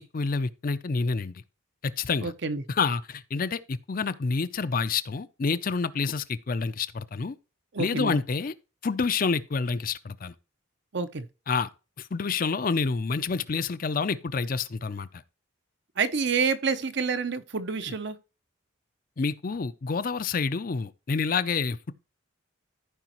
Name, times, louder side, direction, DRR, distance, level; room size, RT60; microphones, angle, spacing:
voice 1, 0.0-1.4 1.8-2.3 2.7-7.4 7.8-8.5 8.8-10.3 11.5-11.7 12.0-15.2 19.2-21.9, left 4 dB, 40° left, 0.4 m, -28 dB
voice 2, 2.2-2.6 7.7-8.2 10.9-11.3 16.0-18.2, right 5 dB, 55° right, 0.7 m, -28 dB
14.5 x 5.0 x 3.0 m
head